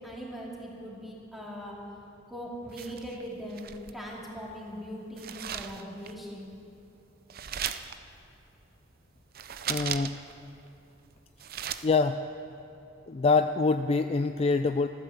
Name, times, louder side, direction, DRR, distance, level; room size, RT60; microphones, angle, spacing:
voice 1, 0.0-1.8 2.3-6.5, equal, ahead, -4 dB, 2.7 m, -40 dB
sound 1, 2.7-4.1 5.2-6.2 7.3-7.9 9.3-10.3 10.7-10.8 11.2-11.9, right 9 dB, 50° right, 0.6 m, -37 dB
voice 2, 9.7-10.2 11.8-12.2 13.1-14.9, left 4 dB, 30° left, 9 dB, 0.3 m, -25 dB
13.5 x 12.5 x 7.3 m, 2.8 s
head